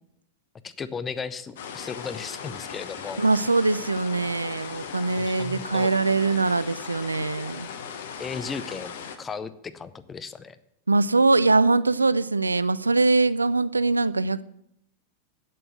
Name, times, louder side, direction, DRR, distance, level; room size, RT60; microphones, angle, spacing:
voice 1, 0.6-3.2 5.2-5.9 8.2-8.9 9.2-10.6, left 5 dB, 20° left, 0.7 m, -35 dB
sound 1, 1.6-9.2, left 7 dB, 60° left, 1.0 m, -38 dB
voice 2, 3.2-7.7 10.9-14.4, right 3 dB, 80° right, 0.3 m, -22 dB
7.9 x 7.5 x 8.0 m
figure-of-eight pair, 90°, 0 cm